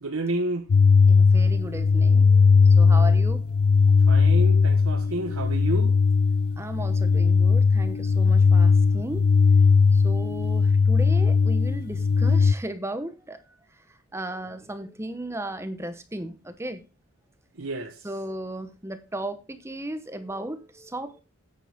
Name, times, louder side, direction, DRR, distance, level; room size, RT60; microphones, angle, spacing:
voice 1, 0.0-0.7 4.1-6.0 17.6-18.1, right 2 dB, 70° right, 1.1 m, -30 dB
sound 1, 0.7-12.5, left 5 dB, 80° left, 0.5 m, -19 dB
voice 2, 1.1-3.5 6.6-9.3 9.9-13.4 14.1-16.8 18.0-21.2, right 1 dB, 10° right, 0.8 m, -35 dB
9.7 x 9.0 x 3.5 m
head